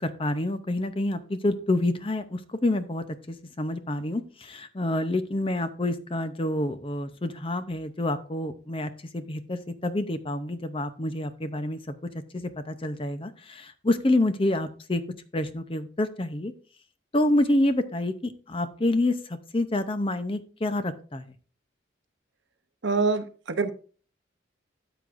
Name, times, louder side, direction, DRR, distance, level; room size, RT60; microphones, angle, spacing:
voice 1, 0.0-11.8 12.3-15.0 15.3-16.5 17.1-21.2, left 1 dB, 30° left, 11 dB, 0.7 m, -28 dB
voice 2, 22.8-23.7, right 4 dB, 70° right, 10 dB, 0.8 m, -25 dB
13.0 x 7.8 x 2.6 m, 0.39 s
head